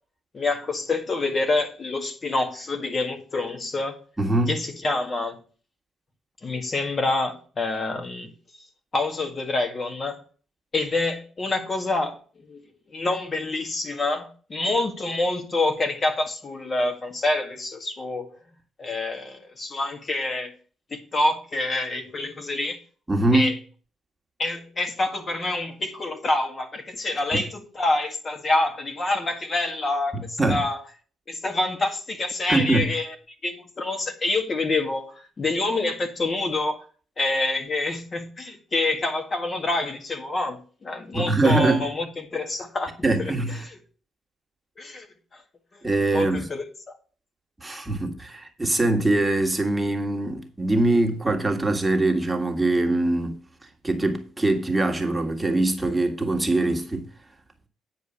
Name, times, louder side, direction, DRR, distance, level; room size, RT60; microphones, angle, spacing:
voice 1, 0.3-4.0 4.5-5.4 6.4-8.3 8.9-10.2 10.7-12.2 12.5-18.3 18.8-20.5 20.9-22.8 23.3-23.6 24.4-30.8 31.3-33.1 33.4-36.8 37.2-43.3 43.6-43.8 44.8-45.1 45.3-45.4 45.7-45.9 46.1-46.6, left 2 dB, 35° left, 1.8 m, -27 dB
voice 2, 4.2-4.5 23.1-23.5 27.3-27.4 30.1-30.6 32.5-32.9 41.1-41.9 43.0-43.6 45.8-46.5 47.6-53.4 53.8-57.1, right 2 dB, 10° right, 1.8 m, -23 dB
9.3 x 5.0 x 7.1 m
cardioid pair, 90°, 0 cm